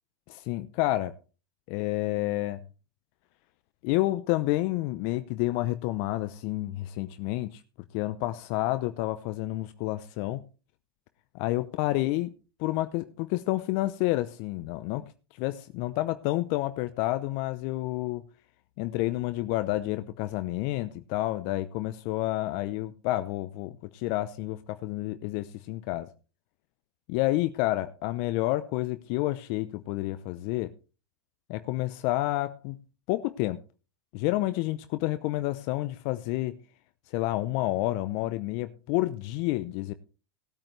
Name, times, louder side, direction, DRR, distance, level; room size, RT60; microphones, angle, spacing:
voice 1, 0.3-1.2 1.7-2.6 3.8-7.6 7.9-10.5 11.3-12.3 12.6-15.1 15.4-18.2 18.8-26.1 27.1-30.7 31.5-32.8 33.1-33.6 34.1-36.6 37.1-39.9, left 17 dB, 55° left, 0.8 m, -29 dB
19.0 x 8.8 x 3.3 m
hypercardioid pair, 95°, 13 cm